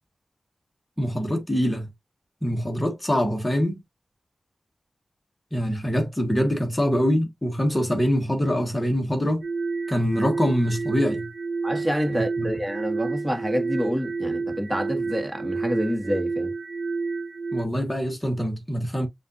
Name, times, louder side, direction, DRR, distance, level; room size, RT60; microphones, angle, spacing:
voice 1, 1.0-1.9 2.4-3.8 5.5-9.4 9.9-11.3 12.1-12.5 17.5-19.1, equal, 10° left, 1.4 m, -24 dB
sound 1, 9.4-17.6, right 4 dB, 60° right, 0.7 m, -30 dB
voice 2, 11.6-16.5, equal, 10° right, 1.5 m, -27 dB
7.3 x 2.6 x 2.6 m
wide cardioid pair, 105°, 0 cm